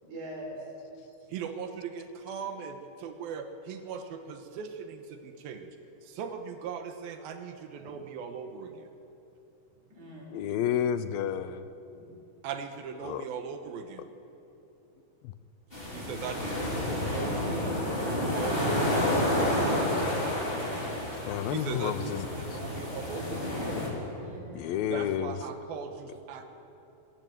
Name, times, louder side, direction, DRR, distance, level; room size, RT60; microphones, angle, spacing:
voice 1, 0.0-0.7 1.0-1.1 7.8-8.0 9.9-10.3 11.9-12.0 24.1-24.8, right 1 dB, 55° right, -1 dB, 5.8 m, -44 dB
voice 2, 1.3-5.7 6.0-8.9 12.4-14.1 15.9-17.8 18.3-19.3 21.5-23.8 24.9-26.5, right 6 dB, 80° right, 6 dB, 3.0 m, -39 dB
voice 3, 10.3-11.7 13.0-13.2 15.2-15.3 20.2-20.4 21.3-22.6 24.6-25.4, left 9 dB, 80° left, 12 dB, 2.5 m, -31 dB
sound 1, 15.7-23.9, left 1 dB, 15° left, 3.9 m, -30 dB
21.5 x 14.0 x 9.2 m, 2.9 s
omnidirectional pair, 4.2 m